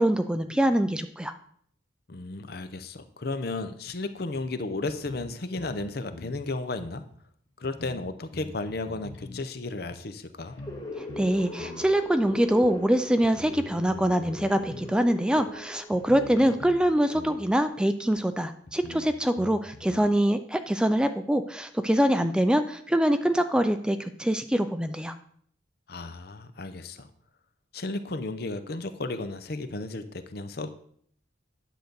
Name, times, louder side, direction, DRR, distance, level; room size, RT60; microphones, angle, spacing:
voice 1, 0.0-1.3 11.0-25.1, right 1 dB, 5° right, 9 dB, 0.3 m, -24 dB
voice 2, 2.1-7.0 7.6-10.6 16.3-16.5 25.9-27.1 27.7-30.7, left 2 dB, 55° left, 10 dB, 0.7 m, -34 dB
sound 1, 3.9-4.0 4.3-4.4 4.9-5.8 6.1-6.4 7.1-7.2 7.6-9.4 9.9-10.0 10.6-10.8 11.1-11.9 12.6-12.7 13.2-15.0 15.4-15.5 15.9-16.9 17.1-17.4 18.1-18.2 18.7-20.0, left 2 dB, 70° left, 1.1 m, -44 dB
sound 2, 10.4-17.7, left 1 dB, 20° left, 1.9 m, -41 dB
10.5 x 3.9 x 6.8 m, 0.63 s
head